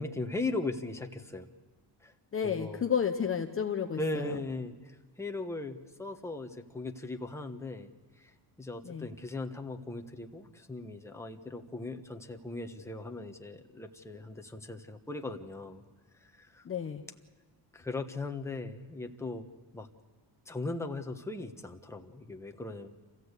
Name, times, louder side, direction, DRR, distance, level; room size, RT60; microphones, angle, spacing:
voice 1, 0.0-1.5 2.0-2.1 2.4-2.8 4.0-15.8 16.2-16.6 17.7-19.5 19.7-19.9 20.5-22.9, left 2 dB, 5° left, 4 dB, 1.2 m, -38 dB
voice 2, 2.3-4.4 8.8-9.1 16.6-17.0, left 7 dB, 30° left, 3 dB, 0.8 m, -31 dB
27.5 x 15.5 x 8.2 m, 1.4 s
cardioid pair, 145°, 46 cm